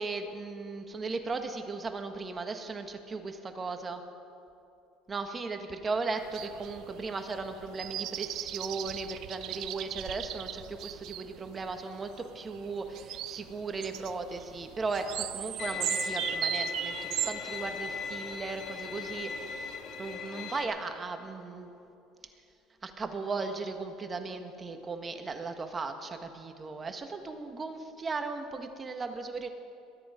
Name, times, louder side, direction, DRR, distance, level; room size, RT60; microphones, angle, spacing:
voice 1, 0.0-4.0 5.1-21.7 22.8-29.5, right 3 dB, 30° right, 6 dB, 1.6 m, -37 dB
sound 1, 6.2-20.2, right 13 dB, 60° right, 0.5 m, -39 dB
Bowed string instrument, 15.6-20.6, left 5 dB, 55° left, 2.0 m, -38 dB
22.0 x 10.0 x 5.1 m, 2.8 s
supercardioid pair, 90°, 0 cm